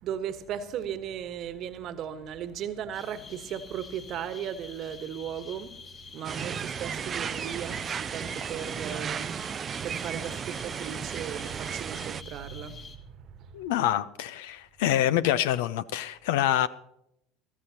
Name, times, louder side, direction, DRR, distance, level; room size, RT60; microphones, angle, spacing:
voice 1, 0.0-5.8 6.1-13.6, right 9 dB, 50° right, 1.3 m, -37 dB
sound 1, 2.9-13.0, left 5 dB, 45° left, 2.1 m, -48 dB
sound 2, 6.2-12.2, right 7 dB, 35° right, 0.4 m, -34 dB
voice 2, 13.5-16.7, left 12 dB, 70° left, 0.6 m, -26 dB
22.0 x 13.0 x 2.9 m
hypercardioid pair, 70°, 0 cm